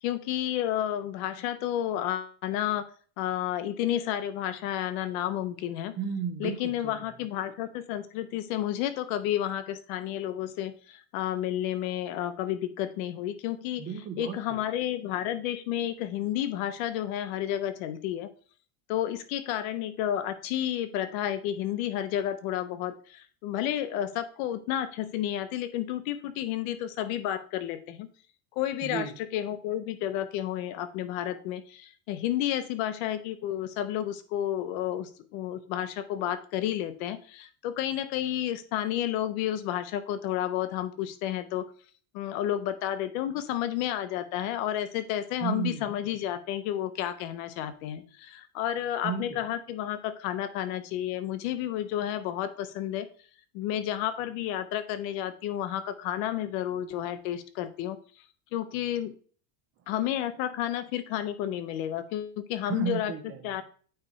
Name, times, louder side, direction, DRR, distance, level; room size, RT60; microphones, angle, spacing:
voice 1, 0.0-2.9 3.2-5.9 6.4-13.8 14.2-18.3 18.9-28.1 28.6-41.7 42.1-53.1 53.5-58.0 58.5-59.1 59.9-63.1 63.4-63.6, left 11 dB, 65° left, 12 dB, 0.9 m, -31 dB
voice 2, 6.0-7.1 13.8-14.6 28.8-29.1 45.4-45.9 49.0-49.4 62.6-63.6, right 7 dB, 30° right, 4 dB, 0.8 m, -34 dB
8.8 x 3.4 x 4.1 m, 0.42 s
cardioid pair, 165°, 45 cm